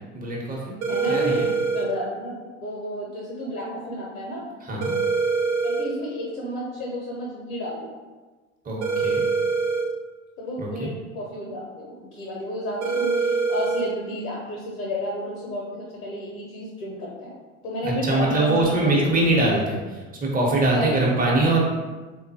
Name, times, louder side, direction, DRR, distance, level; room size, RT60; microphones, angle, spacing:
voice 1, 0.1-0.8 1.1-1.5 4.6-4.9 8.6-9.3 10.6-10.9 17.8-21.6, right 2 dB, 20° right, -3 dB, 0.9 m, -23 dB
sound 1, 0.8-1.8 4.8-5.8 8.8-9.8 12.8-13.8, right 4 dB, 85° right, 0.6 m, -24 dB
voice 2, 0.9-1.4 1.7-4.5 5.6-7.9 10.4-17.3 17.6-19.2 20.7-21.6, left 1 dB, 75° left, -4 dB, 0.7 m, -32 dB
3.5 x 2.2 x 2.8 m, 1.3 s
hypercardioid pair, 65°, 40 cm